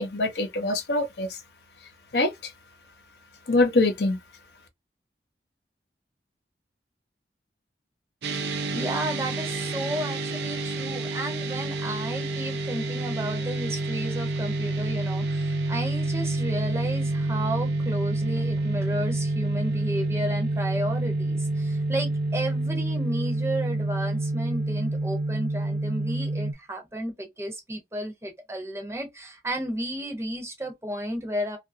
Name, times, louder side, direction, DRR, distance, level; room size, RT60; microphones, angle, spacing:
voice 1, 0.0-1.4 2.1-2.5 3.5-4.2, left 2 dB, 70° left, 0.7 m, -24 dB
sound 1, 8.2-26.5, right 2 dB, 75° right, 0.5 m, -28 dB
voice 2, 8.7-31.6, right 1 dB, 15° right, 0.6 m, -33 dB
2.7 x 2.4 x 2.5 m
head